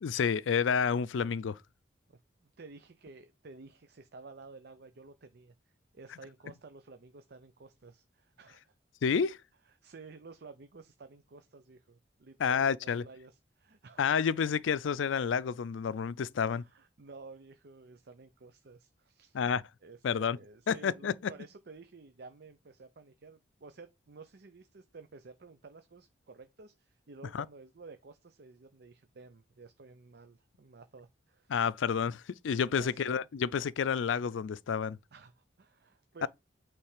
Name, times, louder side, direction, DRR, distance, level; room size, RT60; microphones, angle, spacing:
voice 1, 0.0-1.6 9.0-9.4 12.4-13.0 14.0-16.6 19.3-19.6 20.0-20.4 20.7-21.3 27.3-27.4 31.5-35.0 36.2-36.3, left 6 dB, 90° left, 0.4 m, -29 dB
voice 2, 2.6-5.5 5.9-8.7 9.7-14.1 16.4-19.4 19.8-31.5 32.7-33.1 35.1-36.3, right 3 dB, 60° right, 0.6 m, -52 dB
8.6 x 3.3 x 4.9 m
head